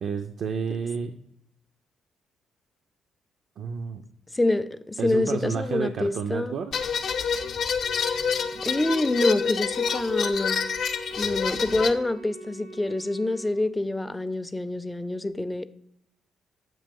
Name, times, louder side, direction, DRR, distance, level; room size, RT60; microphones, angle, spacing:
voice 1, 0.0-1.1 3.6-4.0 5.0-6.8 11.2-11.3 11.7-11.9, right 6 dB, 65° right, 7 dB, 0.5 m, -30 dB
voice 2, 4.3-6.5 7.9-8.3 8.6-10.6 11.2-15.7, left 2 dB, 10° left, 12 dB, 0.4 m, -26 dB
sound 1, 6.7-11.9, left 6 dB, 65° left, 0.6 m, -27 dB
Wind instrument woodwind instrument, 7.8-13.6, right 3 dB, 85° right, 0.8 m, -43 dB
7.6 x 2.9 x 5.3 m, 0.75 s
cardioid pair, 90°, 0 cm